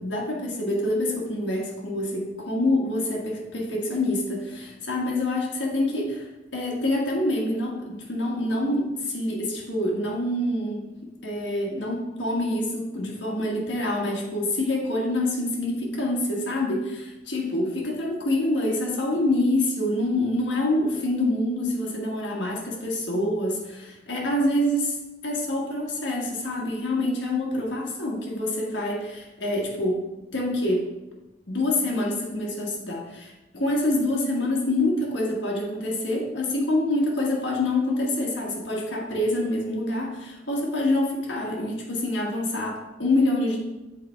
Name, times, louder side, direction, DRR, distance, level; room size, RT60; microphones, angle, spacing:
voice 1, 0.0-6.3 6.5-10.9 11.2-25.0 25.2-30.0 30.3-30.9 31.5-43.6, left 1 dB, 70° left, -2 dB, 1.5 m, -26 dB
6.7 x 4.2 x 4.5 m, 1.0 s
head